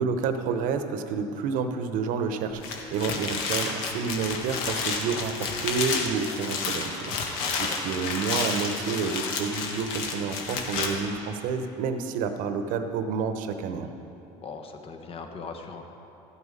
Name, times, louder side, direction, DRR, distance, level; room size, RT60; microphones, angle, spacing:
voice 1, 0.0-13.9, right 5 dB, 65° right, 8 dB, 0.9 m, -29 dB
sound 1, 2.5-10.9, left 4 dB, 75° left, 1.6 m, -31 dB
voice 2, 7.4-7.9 14.4-15.9, left 4 dB, 40° left, 4 dB, 1.3 m, -40 dB
13.5 x 8.3 x 5.2 m, 3.0 s
supercardioid pair, 95°, 15 cm